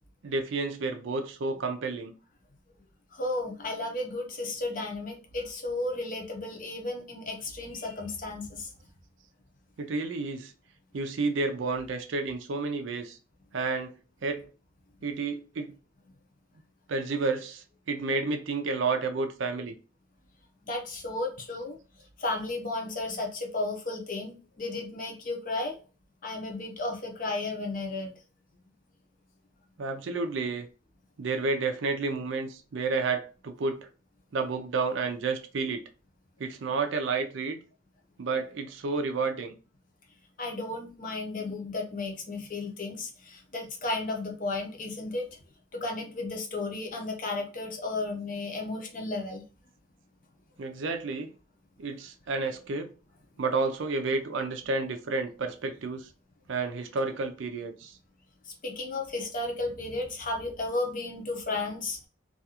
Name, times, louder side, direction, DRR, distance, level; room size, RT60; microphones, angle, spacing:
voice 1, 0.2-2.1 9.8-10.5 10.9-13.2 13.5-14.0 14.2-14.5 15.0-15.7 16.9-19.8 29.8-30.7 31.2-33.9 34.3-35.8 36.4-37.6 38.2-39.5 50.6-51.3 51.8-52.9 53.4-56.1 56.5-57.9, right 3 dB, 65° right, 0.4 m, -30 dB
voice 2, 3.1-8.7 20.7-21.8 22.2-25.8 26.2-28.1 40.4-45.3 45.7-49.4 58.5-62.0, left 2 dB, 40° left, 0.6 m, -33 dB
2.4 x 2.3 x 2.8 m
head